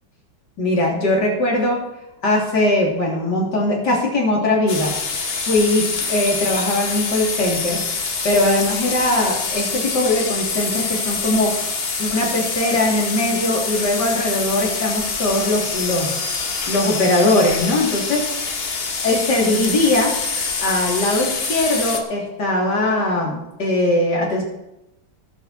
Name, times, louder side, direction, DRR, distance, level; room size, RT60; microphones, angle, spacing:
voice 1, 0.6-1.8 2.2-4.9 5.5-11.5 12.0-16.1 16.7-18.3 19.0-20.1 20.6-24.4, left 1 dB, 60° left, -3 dB, 3.8 m, -20 dB
sound 1, 4.7-22.0, left 4 dB, 35° left, 1.2 m, -25 dB
19.0 x 7.4 x 4.4 m, 0.90 s
omnidirectional pair, 2.1 m